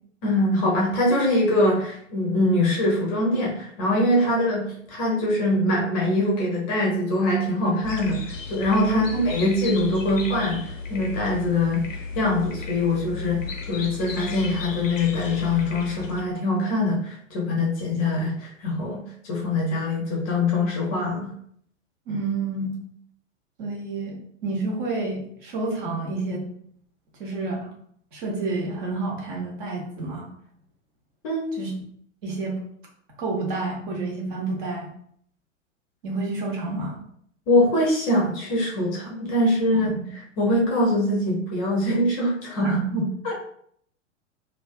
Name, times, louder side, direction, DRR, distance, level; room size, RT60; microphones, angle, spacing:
voice 1, 0.2-21.3 31.2-31.6 37.5-39.9 40.4-42.8, left 1 dB, 30° left, -2 dB, 0.6 m, -23 dB
sound 1, 7.8-16.2, left 4 dB, 80° left, 0.5 m, -34 dB
voice 2, 22.1-22.8 23.6-26.5 27.2-27.7 28.1-30.3 31.6-31.7 32.2-32.6 33.2-34.9 36.0-37.0 39.8-39.9 42.6-43.3, right 3 dB, 40° right, -2 dB, 0.8 m, -29 dB
2.4 x 2.3 x 2.3 m, 0.65 s
figure-of-eight pair, 100°, 38 cm